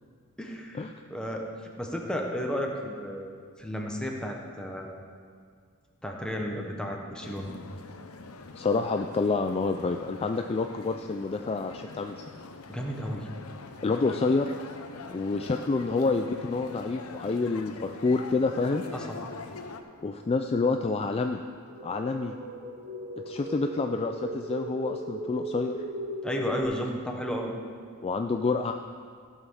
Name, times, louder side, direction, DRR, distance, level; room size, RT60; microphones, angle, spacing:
voice 1, 0.4-1.5 1.8-3.3 3.6-5.0 6.0-7.5 12.7-13.3 18.9-19.2 26.2-27.5, equal, 5° left, 0 dB, 1.0 m, -33 dB
sound 1, 7.2-19.8, left 3 dB, 90° left, 0.7 m, -44 dB
voice 2, 8.6-12.2 13.8-14.6 15.1-18.8 20.0-21.4 21.8-22.3 23.3-25.8 28.0-28.7, left 3 dB, 25° left, 5 dB, 0.3 m, -28 dB
sound 2, 21.6-26.6, right 1 dB, 40° right, 1.3 m, -37 dB
14.5 x 5.5 x 6.2 m, 2.1 s
head